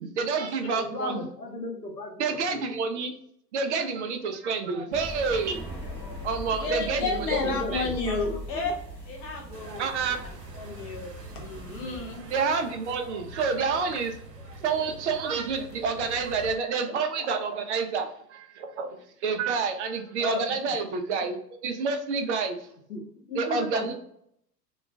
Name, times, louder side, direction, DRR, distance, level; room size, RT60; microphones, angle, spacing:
voice 1, 0.0-1.3 2.2-3.1 3.5-5.7 6.2-7.4 7.7-7.9 9.8-10.2 12.3-14.2 14.5-22.6 23.3-23.9, right 5 dB, 45° right, 5 dB, 0.5 m, -29 dB
voice 2, 0.9-2.6 7.1-7.7 8.1-8.7 22.9-23.9, left 2 dB, 85° left, 2 dB, 0.8 m, -35 dB
sound 1, 4.9-12.2, right 1 dB, 10° right, 0.9 m, -40 dB
voice 3, 6.5-8.8 9.0-9.9 10.6-12.2 20.2-20.4 20.7-20.8 23.9-24.0, left 3 dB, 25° left, 0 dB, 0.4 m, -32 dB
sound 2, 9.5-16.5, right 1 dB, 85° right, 0.7 m, -44 dB
2.3 x 2.2 x 3.3 m, 0.71 s
figure-of-eight pair, 90°, 48 cm